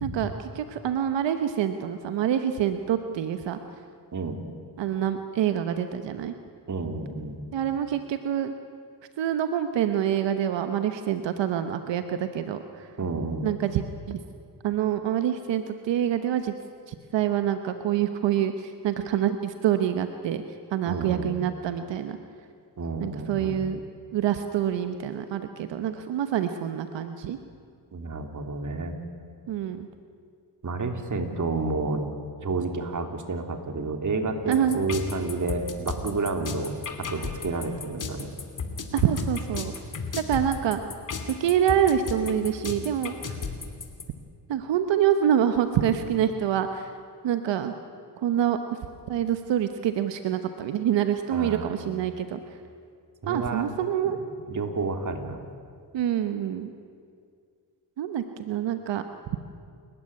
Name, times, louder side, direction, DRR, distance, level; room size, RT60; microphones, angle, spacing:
voice 1, 0.0-3.6 4.8-6.3 7.5-8.5 9.2-12.9 13.4-14.2 14.6-16.5 16.9-20.4 20.7-22.2 23.0-23.8 24.1-27.4 29.5-29.9 34.5-34.8 38.9-39.7 40.3-40.8 41.4-43.4 44.5-46.9 47.2-47.7 48.2-48.8 49.1-52.4 53.3-54.2 55.9-56.7 58.0-59.0, right 10 dB, 90° right, 8 dB, 1.1 m, -26 dB
voice 2, 6.7-7.4 13.0-13.5 20.8-21.3 22.8-23.6 27.9-29.0 30.6-32.0 32.4-36.7 37.0-38.3 51.3-52.0 53.2-53.7 54.0-54.1 54.5-55.4, right 3 dB, 45° right, 5 dB, 3.2 m, -30 dB
sound 1, 34.5-44.0, left 5 dB, 45° left, 3.0 m, -33 dB
29.5 x 14.5 x 9.9 m, 2.2 s
cardioid pair, 80°, 42 cm